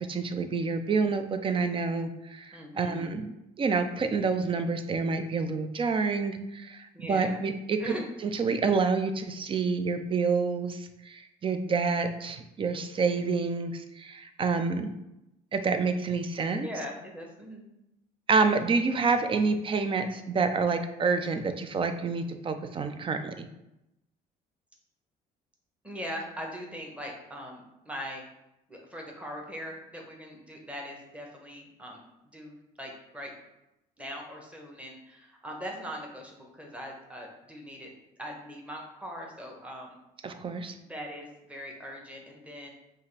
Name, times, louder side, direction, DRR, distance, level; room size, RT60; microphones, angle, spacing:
voice 1, 0.1-3.3 3.6-7.9 8.2-14.9 15.5-16.7 18.3-23.5 40.2-40.7, right 4 dB, 30° right, 8 dB, 0.4 m, -28 dB
voice 2, 2.5-3.1 6.9-7.4 7.8-8.1 16.5-17.7 25.8-28.2 28.7-32.0 32.3-33.3 34.0-37.9 38.2-40.0 40.8-42.7, equal, 5° right, 0 dB, 1.0 m, -41 dB
5.4 x 2.5 x 3.2 m, 0.89 s
cardioid pair, 110°, 17 cm